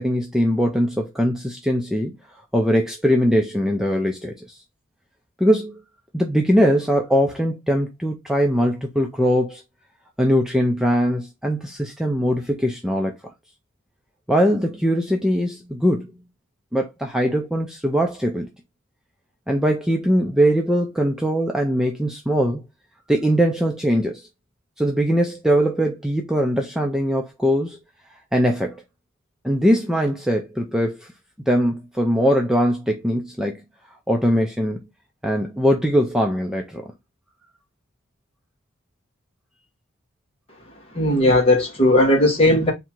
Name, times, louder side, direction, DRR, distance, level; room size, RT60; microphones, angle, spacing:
voice 1, 0.0-2.2 2.5-4.6 5.4-5.8 6.1-9.6 10.2-13.1 14.3-16.2 16.7-18.5 19.5-22.6 23.1-24.3 24.8-27.8 28.3-28.8 29.4-31.1 31.5-33.6 34.1-34.9 35.2-36.9, equal, ahead, 0.5 m, -21 dB
voice 2, 40.9-42.7, left 1 dB, 25° left, 1.3 m, -17 dB
3.6 x 2.8 x 4.3 m
head